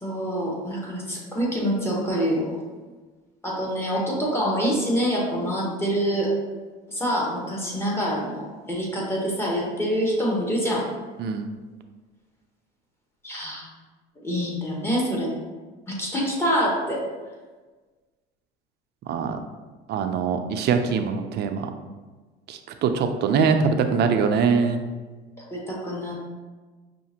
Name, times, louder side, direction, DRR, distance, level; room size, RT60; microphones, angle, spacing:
voice 1, 0.0-2.6 3.4-6.3 6.9-10.9 13.2-13.7 14.2-15.4 15.9-17.0 25.4-26.2, equal, 10° left, -4 dB, 1.3 m, -26 dB
voice 2, 19.1-19.4 19.9-21.7 22.5-24.8, right 5 dB, 55° right, 6 dB, 0.5 m, -23 dB
5.7 x 2.5 x 2.8 m, 1.3 s
supercardioid pair, 90°, 21 cm